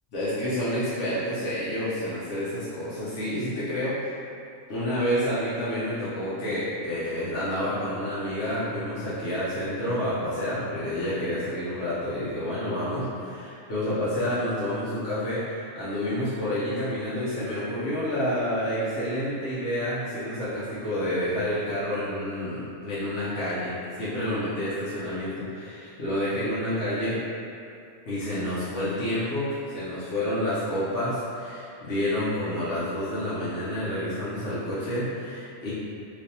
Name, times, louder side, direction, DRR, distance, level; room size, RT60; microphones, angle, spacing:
voice 1, 0.1-4.0 4.7-27.2 28.1-35.7, equal, 70° left, -11 dB, 1.0 m, -29 dB
3.3 x 3.2 x 2.7 m, 2.5 s
omnidirectional pair, 1.2 m